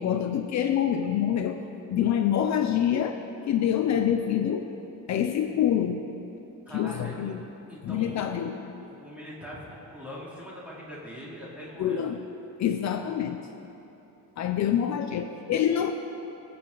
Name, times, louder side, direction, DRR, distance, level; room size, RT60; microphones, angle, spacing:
voice 1, 0.0-1.6 1.9-3.2 3.5-4.7 5.1-6.0 6.7-7.4 7.8-8.6 11.8-12.2 12.6-13.4 14.4-15.9, left 9 dB, 55° left, 6 dB, 0.7 m, -26 dB
voice 2, 6.6-7.4 7.7-8.3 8.8-12.0, equal, 5° right, -8 dB, 3.2 m, -42 dB
23.5 x 8.6 x 4.0 m, 2.9 s
cardioid pair, 160°, 33 cm